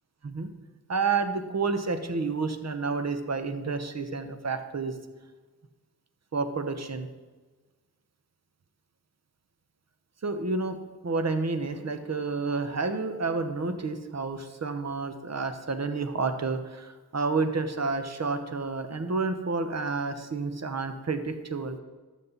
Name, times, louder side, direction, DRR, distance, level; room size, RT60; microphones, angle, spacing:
voice 1, 0.9-4.9 6.3-7.1 10.2-10.8 11.0-21.8, right 4 dB, 40° right, 8 dB, 1.1 m, -30 dB
12.0 x 7.5 x 4.1 m, 1.3 s
cardioid pair, 55°, 39 cm